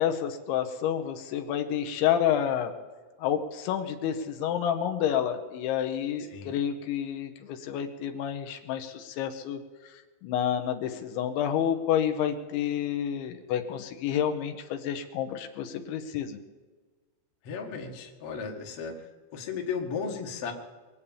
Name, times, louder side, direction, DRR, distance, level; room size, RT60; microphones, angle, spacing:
voice 1, 0.0-2.7 3.2-16.4, left 9 dB, 80° left, 5 dB, 3.4 m, -29 dB
voice 2, 17.4-19.1 19.3-20.5, left 5 dB, 55° left, 0 dB, 1.7 m, -35 dB
23.5 x 8.5 x 7.2 m, 1.3 s
omnidirectional pair, 5.4 m